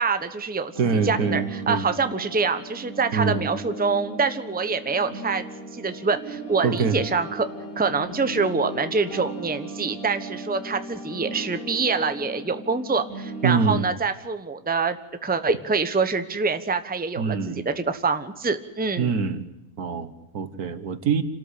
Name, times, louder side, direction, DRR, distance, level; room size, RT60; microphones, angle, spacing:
voice 1, 0.0-5.4 5.7-7.5 7.8-19.1, right 4 dB, 5° right, 9 dB, 0.9 m, -25 dB
sound 1, 0.7-13.5, right 1 dB, 65° left, 7.6 m, -37 dB
voice 2, 0.8-1.9 3.1-3.5 6.6-7.0 13.4-13.9 17.2-17.7 19.0-19.5 19.8-21.2, right 5 dB, 80° right, 11 dB, 1.9 m, -24 dB
27.5 x 13.0 x 10.0 m, 1.0 s
omnidirectional pair, 1.6 m